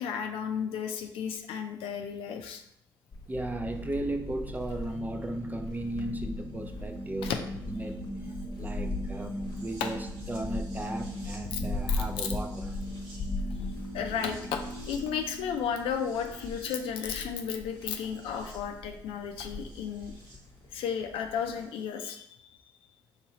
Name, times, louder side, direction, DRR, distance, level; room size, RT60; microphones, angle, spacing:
voice 1, 0.0-2.6 7.2-7.4 11.5-11.6 11.9-12.0 13.6-14.6 14.9-20.1 20.7-22.3, left 7 dB, 80° left, 0.5 m, -33 dB
sound 1, 3.1-21.7, left 3 dB, 50° left, 0.9 m, -40 dB
voice 2, 3.3-7.3 7.7-8.0 8.6-12.7, right 1 dB, 20° right, 0.6 m, -36 dB
sound 2, 3.3-20.4 21.5-21.6, right 1 dB, 90° right, 1.3 m, -41 dB
4.1 x 3.6 x 2.9 m
supercardioid pair, 60°, 9 cm